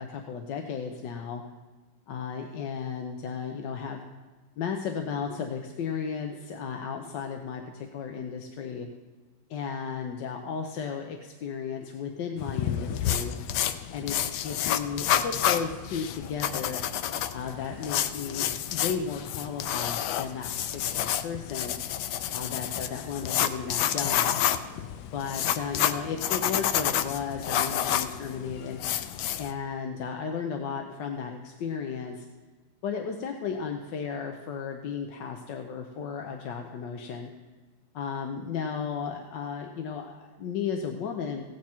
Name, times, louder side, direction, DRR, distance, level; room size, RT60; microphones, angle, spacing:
voice 1, 0.0-1.4 2.1-4.1 4.6-8.9 9.5-13.3 13.9-16.8 17.3-21.7 22.3-24.4 25.1-28.8 29.4-32.3 32.8-37.3 37.9-41.4, left 6 dB, 70° left, 4 dB, 1.4 m, -34 dB
sound 1, 12.4-29.5, left 10 dB, 90° left, 1.4 m, -29 dB
16.0 x 9.5 x 4.4 m, 1.4 s
omnidirectional pair, 2.1 m